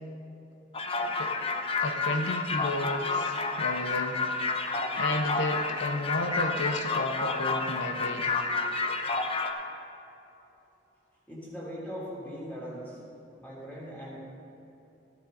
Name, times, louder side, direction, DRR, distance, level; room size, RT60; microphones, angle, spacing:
sound 1, 0.7-9.5, left 3 dB, 30° left, 0.7 m, -30 dB
voice 1, 1.8-4.2 5.0-8.4, left 2 dB, 80° left, 4 dB, 0.8 m, -32 dB
voice 2, 11.3-13.0 13.4-14.2, equal, 10° left, -6 dB, 3.1 m, -40 dB
14.5 x 9.9 x 3.9 m, 3.0 s
head